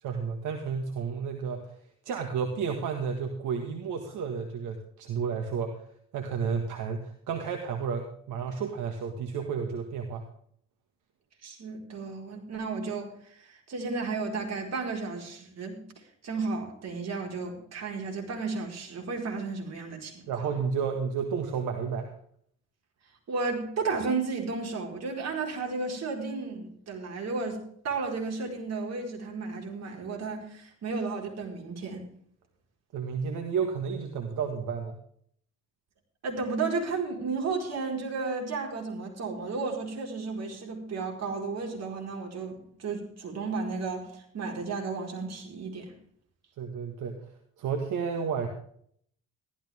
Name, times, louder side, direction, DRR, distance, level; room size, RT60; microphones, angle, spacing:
voice 1, 0.0-1.8 2.0-5.8 6.1-10.2 20.3-22.1 32.9-35.0 46.6-47.3 47.6-48.5, right 6 dB, 80° right, 4 dB, 1.7 m, -31 dB
voice 2, 11.4-15.8 16.2-20.3 23.3-32.0 36.2-45.9, right 4 dB, 60° right, 1 dB, 4.6 m, -33 dB
15.0 x 13.0 x 3.6 m, 0.63 s
cardioid pair, 90°, 30 cm